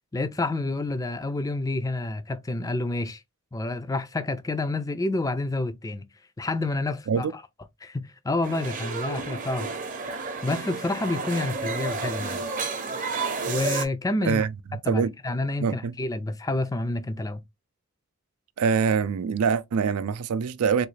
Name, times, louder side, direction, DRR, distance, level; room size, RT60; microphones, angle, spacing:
voice 1, 0.1-3.2 3.5-6.1 6.4-7.4 7.8-9.7 10.0-10.1 10.4-12.5 13.5-14.5 14.8-17.4, left 2 dB, 15° left, 0.3 m, -29 dB
sound 1, 8.4-13.9, right 4 dB, 35° right, 0.7 m, -31 dB
voice 2, 15.6-15.9 18.6-20.9, right 6 dB, 85° right, 0.4 m, -24 dB
3.8 x 2.3 x 3.1 m
head